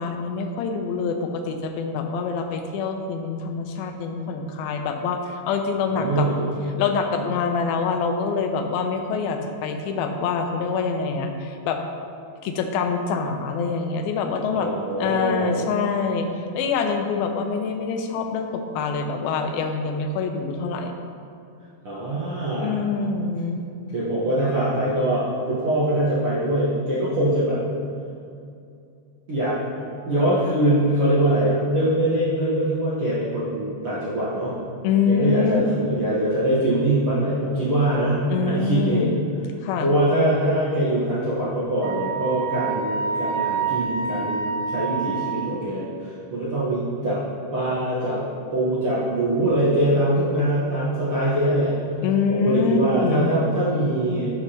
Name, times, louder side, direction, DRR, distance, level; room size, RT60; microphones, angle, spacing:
voice 1, 0.0-6.3 6.8-11.8 12.4-14.7 15.0-16.3 16.5-20.9 22.6-23.6 34.8-35.6 38.3-39.2 39.6-39.9 52.0-53.3, left 5 dB, 85° left, 5 dB, 2.5 m, -25 dB
voice 2, 5.9-6.5 14.5-15.7 21.8-22.8 23.9-27.6 29.3-29.6 30.1-34.5 35.1-39.1 39.8-47.2 47.5-48.2 48.5-51.7 52.3-54.3, right 1 dB, 60° right, -9 dB, 1.4 m, -23 dB
Wind instrument woodwind instrument, 41.8-45.7, right 5 dB, 75° right, 2.4 m, -27 dB
11.5 x 6.9 x 2.9 m, 2.5 s
omnidirectional pair, 4.2 m